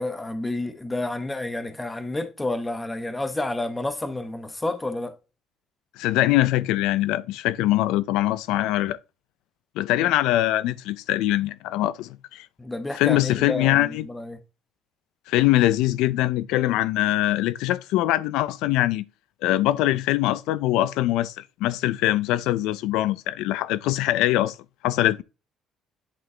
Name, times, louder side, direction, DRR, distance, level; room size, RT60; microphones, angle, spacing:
voice 1, 0.0-5.1 12.6-14.4, left 2 dB, 10° left, 1.0 m, -30 dB
voice 2, 6.0-9.0 9.8-12.5 13.0-14.1 15.3-19.0 19.4-24.6 24.8-25.2, left 15 dB, 90° left, 0.5 m, -23 dB
11.0 x 4.1 x 3.3 m
cardioid pair, 125°, 0 cm